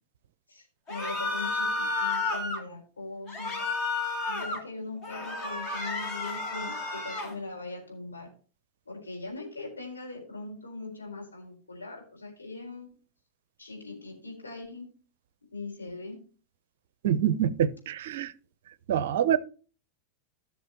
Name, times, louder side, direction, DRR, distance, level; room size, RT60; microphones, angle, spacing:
voice 1, 0.5-3.6 4.3-8.3 8.9-12.9 13.6-14.9 15.5-16.2, left 3 dB, 75° left, 4.2 m, -40 dB
sound 1, 0.9-2.6 3.3-4.6 5.0-7.3, left 3 dB, 30° left, 2.6 m, -31 dB
voice 2, 17.0-18.3 18.9-19.4, right 9 dB, 55° right, 0.5 m, -25 dB
15.5 x 6.2 x 3.0 m
figure-of-eight pair, 90°, 0 cm